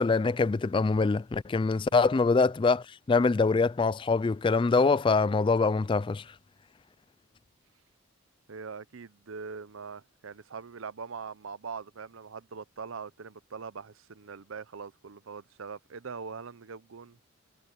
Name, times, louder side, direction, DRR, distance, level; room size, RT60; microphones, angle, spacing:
voice 1, 0.0-6.3, left 4 dB, 25° left, 0.3 m, -24 dB
voice 2, 8.5-17.2, right 5 dB, 75° right, 0.7 m, -42 dB
head